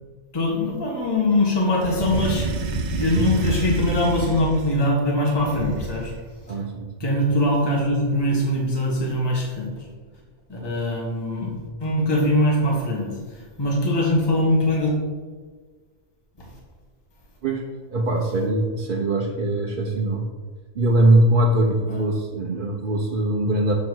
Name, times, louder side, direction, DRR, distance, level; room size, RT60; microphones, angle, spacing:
voice 1, 0.3-6.1 7.0-9.8 10.5-11.5 11.8-14.9 21.9-22.0, left 1 dB, 20° left, -2 dB, 1.3 m, -22 dB
sound 1, 1.8-4.8 5.4-6.3, right 3 dB, 65° right, 0.4 m, -28 dB
voice 2, 6.5-6.9 10.6-10.7 17.4-17.6 17.9-20.3 20.7-23.7, right 1 dB, 50° right, -2 dB, 0.8 m, -21 dB
7.5 x 3.0 x 6.1 m, 1.5 s
omnidirectional pair, 1.3 m